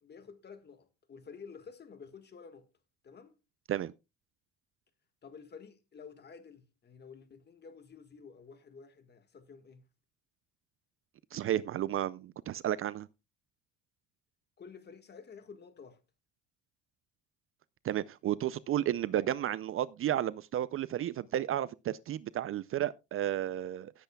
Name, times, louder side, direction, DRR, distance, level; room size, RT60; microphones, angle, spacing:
voice 1, 0.0-2.7 3.0-3.4 5.2-9.8 14.6-16.0, left 5 dB, 35° left, 1.6 m, -51 dB
voice 2, 11.3-13.1 17.8-23.9, right 12 dB, 45° right, 0.4 m, -32 dB
17.0 x 8.0 x 2.2 m
cardioid pair, 130°, 31 cm